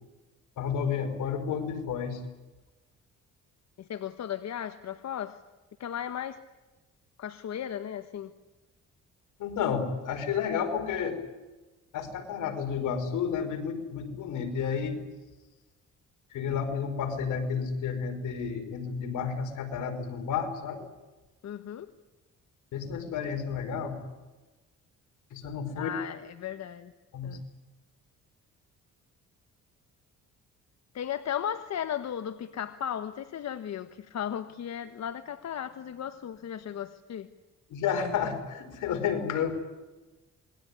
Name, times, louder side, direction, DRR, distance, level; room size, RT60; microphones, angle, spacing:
voice 1, 0.6-2.2 9.4-11.2 11.9-15.0 16.3-20.9 22.7-24.0 25.3-25.9 27.1-27.4 37.7-39.5, left 7 dB, 80° left, 5 dB, 5.1 m, -31 dB
voice 2, 3.8-5.4 5.8-6.4 7.2-8.3 21.4-21.9 25.8-26.9 27.2-27.4 30.9-37.3, left 9 dB, 60° left, 10 dB, 1.3 m, -36 dB
27.5 x 22.0 x 9.8 m, 1.1 s
cardioid pair, 90°, 30 cm